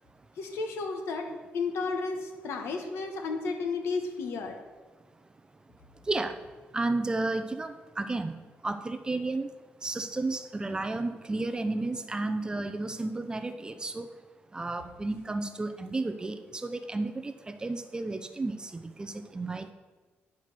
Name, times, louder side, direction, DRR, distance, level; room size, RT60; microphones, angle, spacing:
voice 1, 0.4-1.3 1.5-4.6, left 4 dB, 90° left, 4 dB, 1.3 m, -32 dB
voice 2, 6.7-8.3 8.6-9.5 9.8-14.1 14.5-19.7, right 2 dB, 20° right, 9 dB, 0.5 m, -32 dB
10.0 x 4.8 x 5.9 m, 1.3 s
cardioid pair, 120°, 4 cm